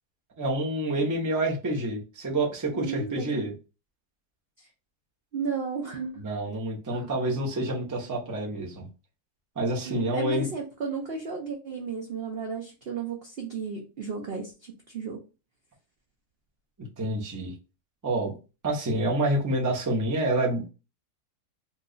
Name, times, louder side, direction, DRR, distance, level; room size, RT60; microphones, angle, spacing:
voice 1, 0.4-3.5 6.2-8.8 9.6-10.5 16.8-17.5 18.0-18.3 18.6-20.7, right 1 dB, 20° right, -2 dB, 0.5 m, -28 dB
voice 2, 2.7-3.5 4.6-4.7 5.3-6.2 6.9-7.1 9.8-15.2, right 5 dB, 60° right, 0 dB, 0.6 m, -34 dB
3.0 x 2.3 x 3.7 m, 0.31 s
omnidirectional pair, 1.7 m